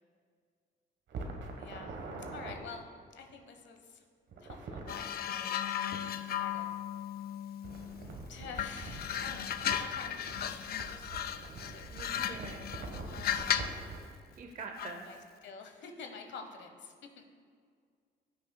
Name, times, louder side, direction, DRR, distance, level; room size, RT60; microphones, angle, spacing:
sound 1, 1.1-2.6 4.3-4.9 7.6-14.0, right 3 dB, 65° right, 1.2 m, -44 dB
voice 1, 1.6-2.0 2.3-2.9 3.1-4.0 4.4-6.7 8.3-10.6 10.9-11.9 13.0-13.6 14.8-17.2, left 5 dB, 65° left, 4 dB, 1.0 m, -48 dB
sound 2, 4.9-8.1 8.6-13.8 14.8-15.0, left 10 dB, 50° left, 0.4 m, -36 dB
voice 2, 11.9-12.6 14.3-15.0, right 4 dB, 40° right, 3 dB, 0.7 m, -44 dB
15.0 x 6.1 x 2.2 m, 2.1 s
cardioid pair, 90°, 20 cm